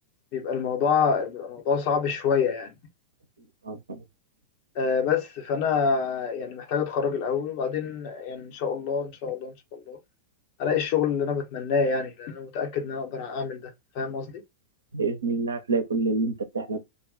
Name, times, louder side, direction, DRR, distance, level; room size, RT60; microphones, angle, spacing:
voice 1, 0.3-2.7 4.8-10.0 10.6-13.6 13.9-14.4, left 6 dB, 45° left, 0.8 m, -27 dB
voice 2, 3.7-4.0 14.9-16.8, right 3 dB, 75° right, 0.7 m, -27 dB
2.6 x 2.2 x 3.6 m
figure-of-eight pair, 90°, 0 cm